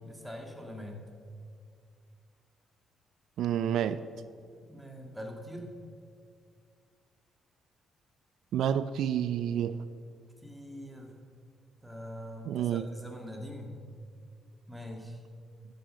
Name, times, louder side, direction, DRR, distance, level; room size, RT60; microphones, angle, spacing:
voice 1, 0.0-1.0 4.7-5.7 10.4-11.1 11.8-13.7 14.7-15.2, equal, 5° right, 1 dB, 2.2 m, -43 dB
voice 2, 3.4-4.0 8.5-9.8 12.5-12.8, right 9 dB, 75° right, 14 dB, 0.4 m, -29 dB
12.5 x 9.1 x 6.4 m, 2.2 s
cardioid pair, 90°, 0 cm